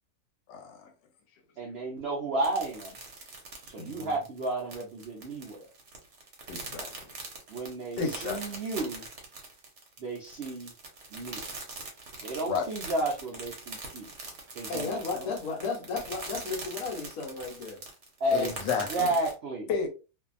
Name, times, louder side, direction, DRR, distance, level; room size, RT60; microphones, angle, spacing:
voice 1, 0.5-0.9 3.8-4.1 6.5-7.1 8.0-8.4 12.2-12.7 18.3-19.1 19.7-19.9, left 5 dB, 90° left, 1.3 m, -32 dB
voice 2, 1.6-3.0 3.7-5.7 7.5-9.0 10.0-10.7 11.1-11.4 12.2-14.1 14.5-15.3 18.2-19.7, right 1 dB, 75° right, 0.5 m, -32 dB
sound 1, 2.4-19.3, right 3 dB, 50° right, 0.9 m, -42 dB
voice 3, 14.7-17.8, left 4 dB, 65° left, 1.2 m, -34 dB
2.6 x 2.6 x 2.4 m
omnidirectional pair, 1.8 m